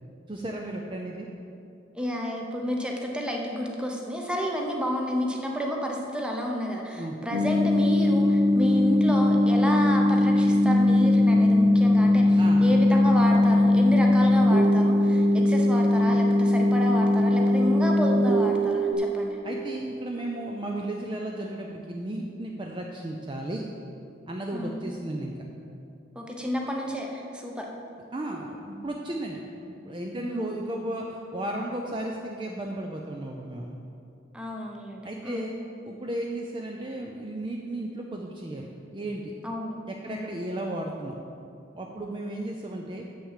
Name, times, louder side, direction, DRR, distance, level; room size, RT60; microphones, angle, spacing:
voice 1, 0.3-1.3 7.0-7.2 12.4-12.7 19.4-23.7 24.3-25.3 28.1-33.8 35.0-35.5 35.8-39.3 39.9-41.1 41.7-43.0, right 1 dB, 25° right, 0 dB, 0.5 m, -34 dB
voice 2, 1.9-19.4 24.5-24.8 26.1-27.7 30.2-30.4 34.3-35.4 39.4-39.8 40.1-40.3, equal, 5° right, 0 dB, 0.8 m, -30 dB
sound 1, 7.3-18.9, left 1 dB, 70° right, 0.9 m, -20 dB
7.3 x 6.1 x 6.5 m, 2.6 s
head